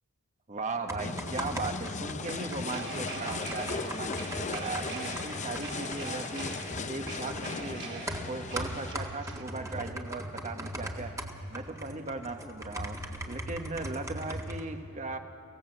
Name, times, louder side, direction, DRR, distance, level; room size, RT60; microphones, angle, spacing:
voice 1, 0.5-6.6 6.9-11.2 11.5-15.2, right 3 dB, 35° right, 6 dB, 1.4 m, -38 dB
sound 1, 0.7-14.6, right 1 dB, 15° right, 1.8 m, -40 dB
sound 2, 1.0-8.9, left 5 dB, 35° left, 0.6 m, -38 dB
sound 3, 2.2-9.4, right 4 dB, 55° right, 3.0 m, -43 dB
25.0 x 16.5 x 8.0 m, 2.3 s
head